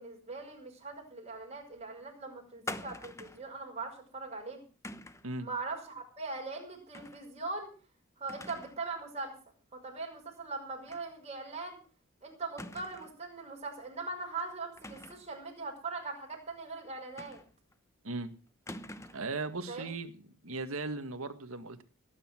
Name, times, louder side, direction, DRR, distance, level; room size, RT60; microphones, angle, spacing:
voice 1, 0.0-4.6 5.4-7.7 8.2-9.3 9.7-11.8 12.2-17.4 19.7-19.9, right 3 dB, 30° right, 5.5 m, -41 dB
sound 1, 2.7-3.5 4.8-5.3 6.9-7.3 7.6-7.7 8.3-8.8 9.2-9.3 10.9-11.1 11.4-11.5 12.6-13.2 14.8-15.3 17.2-17.7 18.7-19.3, left 1 dB, 15° left, 0.9 m, -45 dB
voice 2, 19.1-20.1 20.4-21.8, right 3 dB, 65° right, 1.9 m, -37 dB
19.0 x 9.8 x 6.2 m
head